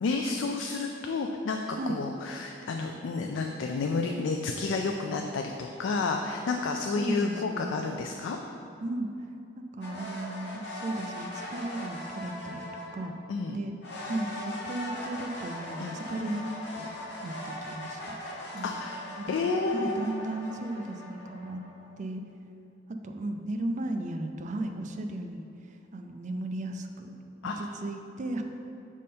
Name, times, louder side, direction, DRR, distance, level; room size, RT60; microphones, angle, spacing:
voice 1, 0.0-8.4 13.3-13.6 15.8-16.0 18.6-20.0 27.4-27.6, left 4 dB, 85° left, 3 dB, 0.3 m, -30 dB
voice 2, 7.0-7.8 8.8-9.1 9.6-13.2 13.5-13.7 14.0-16.5 16.7-16.9 17.2-18.2 18.5-18.8 19.2-21.6 22.0-22.2 23.0-27.1 27.6-28.4, right 1 dB, 40° right, 5 dB, 0.4 m, -35 dB
sound 1, 9.8-13.1 13.8-22.0, left 1 dB, 65° left, 0.9 m, -40 dB
6.3 x 3.6 x 4.2 m, 2.6 s
head